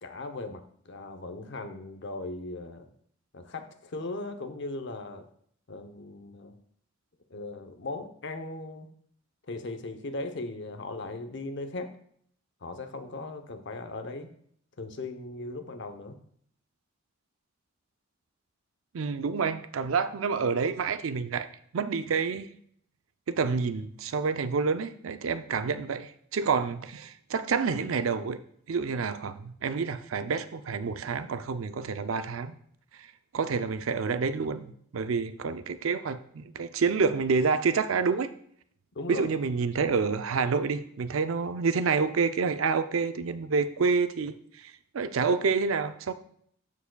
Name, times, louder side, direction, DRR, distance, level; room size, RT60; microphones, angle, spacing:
voice 1, 0.0-2.9 3.3-5.3 5.7-6.6 7.3-8.9 9.5-11.9 12.6-14.3 14.8-16.2 38.9-39.3, left 2 dB, 60° left, 8 dB, 0.7 m, -38 dB
voice 2, 18.9-21.5 21.7-22.5 23.3-28.4 28.7-32.5 33.0-33.1 33.3-38.3 39.1-46.1, right 5 dB, 80° right, 11 dB, 0.5 m, -28 dB
13.5 x 4.8 x 2.3 m, 0.64 s
head